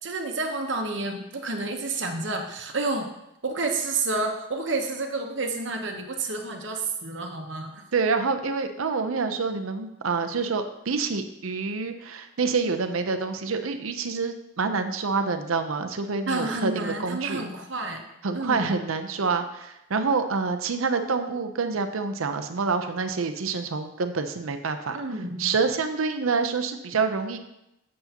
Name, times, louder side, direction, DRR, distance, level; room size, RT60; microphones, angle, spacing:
voice 1, 0.0-3.1 3.4-7.8 16.3-18.0 18.3-18.7 24.9-25.6, right 3 dB, 60° right, 3 dB, 1.0 m, -30 dB
voice 2, 7.9-17.4 18.2-25.0 25.4-27.4, right 4 dB, 90° right, 7 dB, 0.7 m, -27 dB
8.0 x 7.4 x 2.9 m, 0.86 s
head